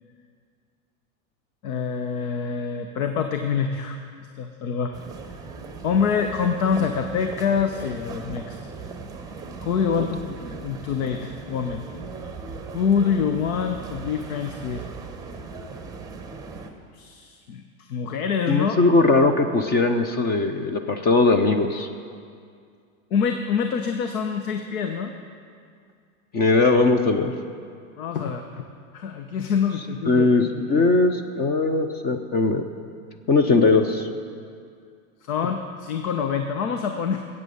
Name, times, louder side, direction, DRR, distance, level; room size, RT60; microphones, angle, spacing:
voice 1, 1.6-4.0 4.3-4.9 5.8-8.6 9.6-10.4 10.6-11.8 12.7-14.8 16.9-18.8 23.1-25.1 28.0-28.6 28.9-30.9 35.2-37.2, left 6 dB, 75° left, 6 dB, 1.0 m, -26 dB
sound 1, 4.9-16.7, right 4 dB, 10° right, 0.9 m, -38 dB
voice 2, 18.5-21.9 26.3-27.3 30.1-32.6 33.3-34.1, left 3 dB, 25° left, 7 dB, 0.6 m, -20 dB
13.5 x 8.6 x 6.9 m, 2.3 s
supercardioid pair, 135°, 42 cm